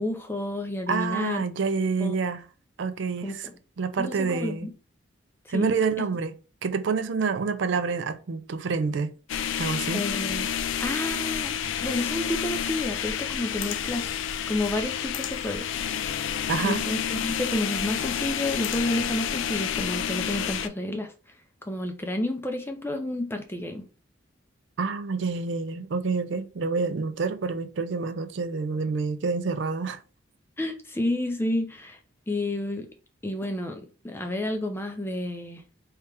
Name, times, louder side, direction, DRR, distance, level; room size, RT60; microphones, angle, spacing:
voice 1, 0.0-1.4 2.0-2.2 3.2-3.4 4.0-4.7 5.5-5.7 9.9-10.5 10.8-11.5 11.8-14.1 14.5-15.7 16.6-21.1 21.7-23.9 30.6-32.0 32.3-32.9 33.2-35.6, left 1 dB, 10° left, 0.4 m, -30 dB
voice 2, 0.9-2.4 2.8-3.5 3.8-4.7 5.5-6.3 6.6-9.1 9.6-10.0 16.5-16.8 24.8-30.0, right 4 dB, 65° right, 0.4 m, -27 dB
sound 1, 9.3-20.7, left 8 dB, 70° left, 0.3 m, -29 dB
3.3 x 2.9 x 3.3 m
head